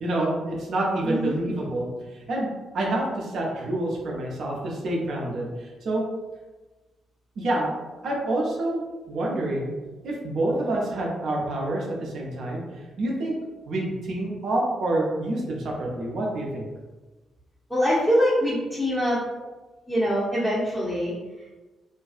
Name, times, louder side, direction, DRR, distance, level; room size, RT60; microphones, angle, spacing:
voice 1, 0.0-6.0 7.4-7.7 8.0-8.8 9.1-9.7 10.0-12.6 13.0-13.3 13.7-16.7, right 1 dB, 55° right, -2 dB, 0.6 m, -27 dB
voice 2, 1.0-1.4 17.7-19.2 19.9-21.6, equal, 5° left, -9 dB, 0.8 m, -24 dB
2.5 x 2.3 x 2.4 m, 1.2 s
figure-of-eight pair, 40°, 0 cm